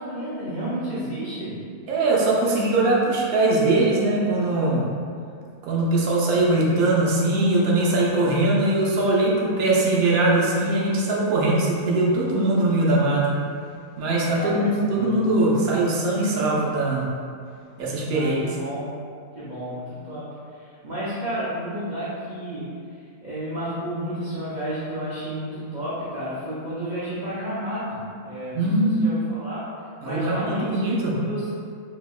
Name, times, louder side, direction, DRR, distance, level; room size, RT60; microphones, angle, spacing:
voice 1, 0.0-1.6 14.3-15.2 18.1-18.9 19.3-29.7 30.0-30.9 31.2-31.5, right 1 dB, 55° right, -10 dB, 0.5 m, -32 dB
voice 2, 1.9-4.9 5.6-13.3 14.0-17.1 17.8-18.5 28.5-29.0 30.0-31.2, right 2 dB, 75° right, -4 dB, 1.1 m, -21 dB
4.2 x 2.8 x 2.3 m, 2.2 s
omnidirectional pair, 1.6 m